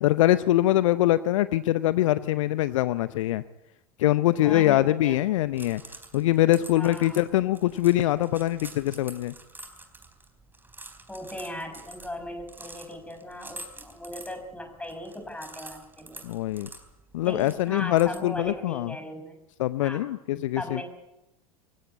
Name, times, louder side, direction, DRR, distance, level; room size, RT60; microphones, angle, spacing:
voice 1, 0.0-3.4 4.0-5.8 6.1-9.3 16.2-16.7 17.1-19.0 19.6-20.8, left 15 dB, 55° left, 15 dB, 0.8 m, -23 dB
voice 2, 4.4-5.2 6.7-7.2 11.1-16.2 17.2-19.4 19.8-20.1 20.6-20.8, left 1 dB, 5° left, 6 dB, 5.9 m, -38 dB
sound 1, 5.3-18.6, right 2 dB, 10° right, 4.0 m, -48 dB
25.0 x 16.0 x 8.5 m, 0.92 s
figure-of-eight pair, 80°, 19 cm